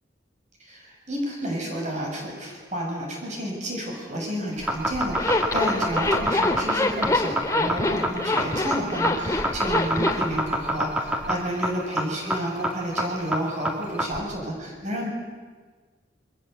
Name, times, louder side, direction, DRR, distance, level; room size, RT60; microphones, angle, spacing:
voice 1, 0.6-15.1, equal, 40° right, 0 dB, 7.4 m, -31 dB
sound 1, 4.5-14.2, right 1 dB, 5° right, 2.9 m, -26 dB
Zipper (clothing), 5.1-10.3, left 2 dB, 20° left, 2.3 m, -25 dB
28.5 x 23.0 x 8.2 m, 1.5 s
head